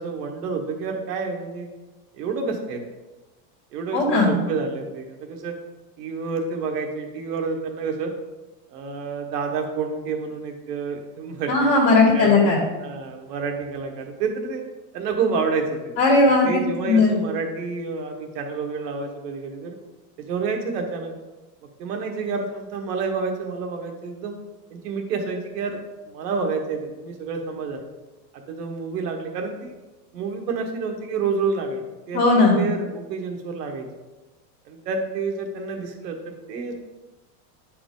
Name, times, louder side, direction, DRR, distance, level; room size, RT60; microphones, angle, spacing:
voice 1, 0.0-1.7 2.2-2.8 3.7-5.5 6.0-8.1 8.7-11.5 12.1-12.5 12.8-14.6 14.9-15.9 16.4-19.8 20.2-21.1 21.8-24.3 24.7-25.8 26.1-27.8 28.5-29.7 30.1-33.9 34.6-36.7, right 4 dB, 70° right, 3 dB, 1.6 m, -29 dB
voice 2, 3.9-4.3 11.5-12.6 16.0-16.6 16.9-17.1 32.1-32.6, left 3 dB, 30° left, -3 dB, 1.9 m, -17 dB
9.9 x 5.0 x 3.8 m, 1.1 s
supercardioid pair, 170°, 49 cm